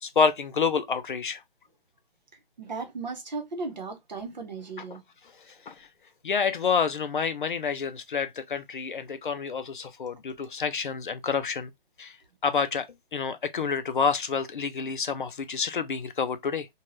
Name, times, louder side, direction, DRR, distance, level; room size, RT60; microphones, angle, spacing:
voice 1, 0.0-1.4 5.7-5.9 6.2-11.7 12.0-12.2 12.4-16.7, left 5 dB, 55° left, 0.5 m, -28 dB
voice 2, 2.6-5.0, right 4 dB, 45° right, 0.8 m, -36 dB
2.7 x 2.2 x 3.0 m
hypercardioid pair, 170°, 30 cm